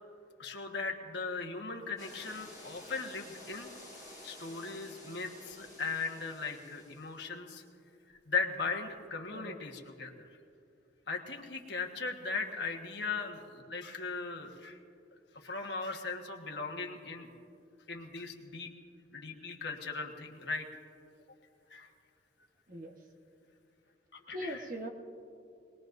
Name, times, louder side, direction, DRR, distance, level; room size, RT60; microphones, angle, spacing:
voice 1, 0.4-3.7 4.2-7.6 8.1-10.3 11.1-14.8 15.3-17.3 17.9-18.7 19.1-20.7 21.7-21.9 24.3-24.6, left 4 dB, 65° left, 3 dB, 1.4 m, -38 dB
sound 1, 2.0-7.2, left 1 dB, 20° right, 3.3 m, -52 dB
voice 2, 24.3-24.9, right 1 dB, 45° right, 3 dB, 1.2 m, -40 dB
22.0 x 20.0 x 2.6 m, 2.5 s
head